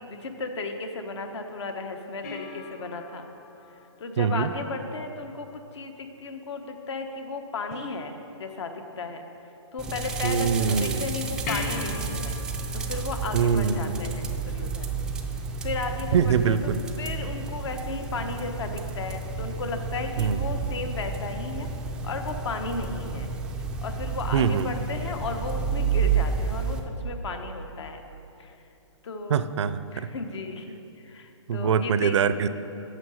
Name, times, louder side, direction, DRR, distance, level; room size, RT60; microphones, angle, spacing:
voice 1, 0.1-3.3 4.0-9.3 9.7-12.4 12.7-14.9 15.6-16.7 17.0-21.7 22.0-23.3 23.8-28.0 28.4-28.6 29.0-29.5 29.9-32.2, left 3 dB, 65° left, 6 dB, 1.2 m, -34 dB
sound 1, 2.2-4.8 7.7-8.7 11.5-14.4 17.4-17.5, left 4 dB, 35° left, 1.1 m, -40 dB
voice 2, 4.2-4.5 10.2-11.1 13.3-14.0 16.1-16.8 20.2-20.4 24.3-24.7 29.3-30.1 31.5-32.5, right 7 dB, 65° right, 14 dB, 0.5 m, -24 dB
sound 2, 9.8-26.8, right 4 dB, 5° right, 0.4 m, -31 dB
9.6 x 6.7 x 6.3 m, 2.9 s
hypercardioid pair, 150°, 16 cm